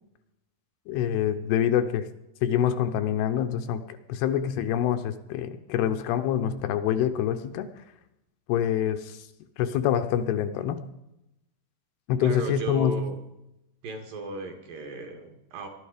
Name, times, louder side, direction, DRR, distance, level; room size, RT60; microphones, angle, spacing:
voice 1, 0.9-2.1 2.4-7.7 8.5-9.2 9.6-10.9 12.1-13.0, left 9 dB, 80° left, 8 dB, 2.6 m, -26 dB
voice 2, 12.2-13.2 13.8-15.7, right 2 dB, 60° right, 4 dB, 3.1 m, -35 dB
19.5 x 12.0 x 5.0 m, 0.89 s
omnidirectional pair, 4.9 m